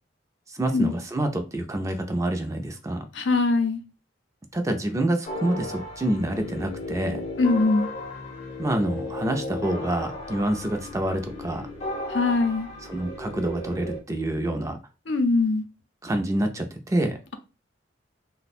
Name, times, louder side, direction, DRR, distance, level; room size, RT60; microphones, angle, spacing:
voice 1, 0.5-3.0 4.5-7.2 8.6-11.6 12.9-14.8 16.0-17.2, right 1 dB, 15° right, 0.5 m, -27 dB
voice 2, 3.1-3.8 7.4-7.9 12.1-12.7 15.1-15.7, left 3 dB, 85° left, 0.6 m, -22 dB
sound 1, 5.3-14.0, left 2 dB, 40° left, 0.7 m, -35 dB
3.1 x 2.1 x 4.2 m
head